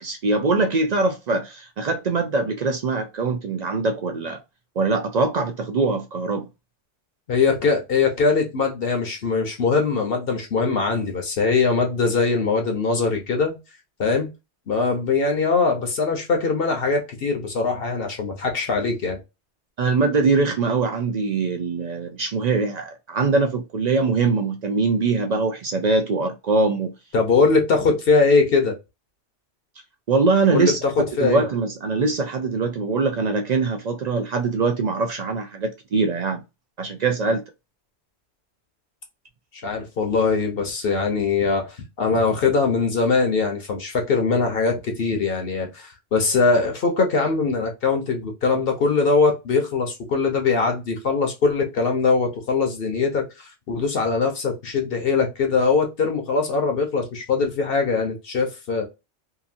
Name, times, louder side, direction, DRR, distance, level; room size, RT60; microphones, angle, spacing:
voice 1, 0.0-4.4 4.8-6.5 19.8-26.9 30.1-36.4 36.8-37.4, right 3 dB, 60° right, 0.4 m, -22 dB
voice 2, 7.3-13.6 14.0-14.3 14.7-19.2 27.1-28.7 30.5-30.7 31.2-31.4 39.6-58.9, left 4 dB, 60° left, 0.9 m, -21 dB
2.8 x 2.6 x 2.5 m
omnidirectional pair, 1.2 m